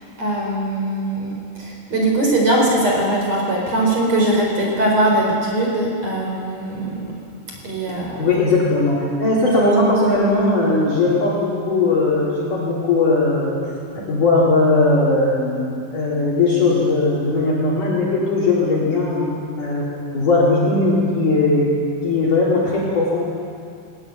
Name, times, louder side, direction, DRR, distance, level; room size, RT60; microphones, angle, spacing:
voice 1, 0.2-7.1 7.6-8.3, right 1 dB, 35° right, -2 dB, 4.9 m, -20 dB
voice 2, 8.2-13.6 14.1-21.7 22.0-23.2, left 2 dB, 45° left, -5 dB, 4.9 m, -18 dB
20.5 x 20.0 x 9.0 m, 2.4 s
omnidirectional pair, 5.6 m